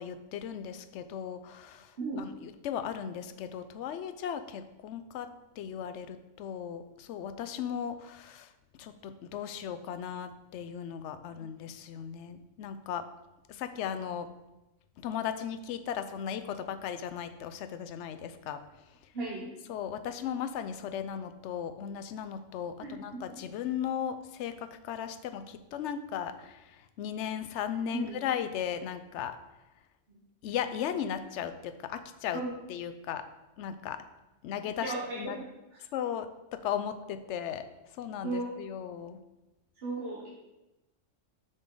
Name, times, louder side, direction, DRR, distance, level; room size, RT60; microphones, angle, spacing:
voice 1, 0.0-5.3 5.6-8.5 8.8-13.1 13.5-14.3 15.0-18.6 19.7-29.4 30.4-32.4 32.7-33.2 33.6-34.0 34.4-35.4 35.9-37.6 37.9-39.2, left 8 dB, 70° left, 10 dB, 0.8 m, -36 dB
voice 2, 19.1-19.5 22.8-23.0 27.9-28.2 30.1-30.2 32.3-32.5 34.8-35.5 38.2-38.5 39.7-40.3, right 3 dB, 55° right, -4 dB, 1.2 m, -36 dB
7.0 x 5.5 x 3.8 m, 1.0 s
omnidirectional pair, 1.3 m